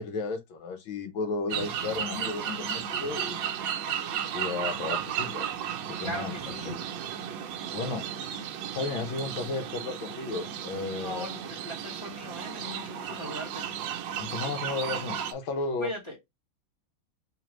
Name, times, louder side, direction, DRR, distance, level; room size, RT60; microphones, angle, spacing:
voice 1, 0.0-3.4 4.3-5.5 5.9-6.3 6.6-6.9 7.7-8.1 8.7-11.3 14.2-15.9, left 3 dB, 75° left, 1.8 m, -33 dB
sound 1, 1.5-15.3, right 9 dB, 70° right, 1.3 m, -34 dB
voice 2, 6.0-6.7 10.9-13.9 15.8-16.3, equal, 15° left, 1.6 m, -39 dB
3.7 x 3.3 x 3.0 m
omnidirectional pair, 2.3 m